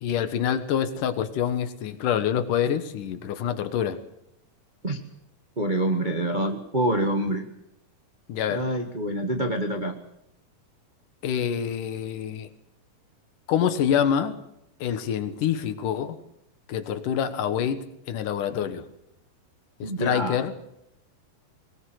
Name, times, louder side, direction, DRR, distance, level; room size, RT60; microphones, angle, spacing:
voice 1, 0.0-4.0 8.3-8.7 11.2-12.5 13.5-14.4 14.8-16.2 16.7-18.8 19.8-20.5, left 9 dB, 70° left, 10 dB, 2.8 m, -26 dB
voice 2, 5.6-7.4 8.5-9.9 19.8-20.4, right 1 dB, 40° right, 3 dB, 0.6 m, -26 dB
22.0 x 20.0 x 7.9 m, 0.80 s
omnidirectional pair, 3.9 m